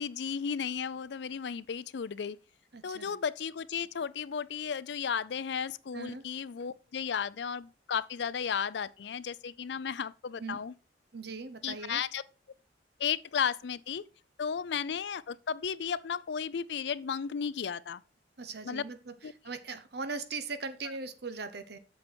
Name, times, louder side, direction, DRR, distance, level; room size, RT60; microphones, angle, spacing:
voice 1, 0.0-2.4 2.8-10.7 11.6-12.2 13.0-14.0 14.4-18.0 18.6-18.8 19.2-19.3, left 7 dB, 70° left, 0.4 m, -34 dB
voice 2, 2.7-3.1 5.9-6.2 10.4-10.6 11.1-12.0 18.4-21.8, right 4 dB, 65° right, 1.0 m, -40 dB
7.9 x 7.0 x 4.4 m
head